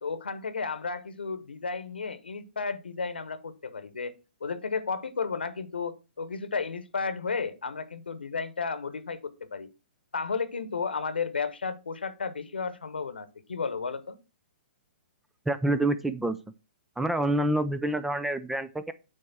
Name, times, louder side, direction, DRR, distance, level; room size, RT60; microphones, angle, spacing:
voice 1, 0.0-4.1 4.4-9.7 10.1-14.2, left 5 dB, 75° left, 1.1 m, -33 dB
voice 2, 15.5-16.4 17.0-18.9, right 1 dB, 5° right, 0.5 m, -27 dB
9.1 x 3.5 x 5.9 m
figure-of-eight pair, 120°, 5 cm